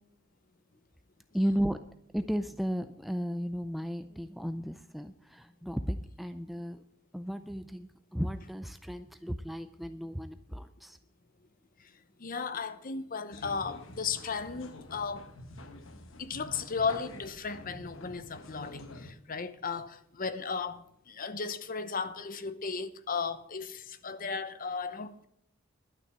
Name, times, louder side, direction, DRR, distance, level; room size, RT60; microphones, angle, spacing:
voice 1, 1.3-1.8 2.1-6.8 7.1-11.0, equal, ahead, 0.4 m, -34 dB
voice 2, 12.2-15.3 16.2-25.3, left 5 dB, 45° left, 0.8 m, -35 dB
sound 1, 13.3-19.1, left 2 dB, 70° left, 1.2 m, -47 dB
11.5 x 6.4 x 8.3 m
head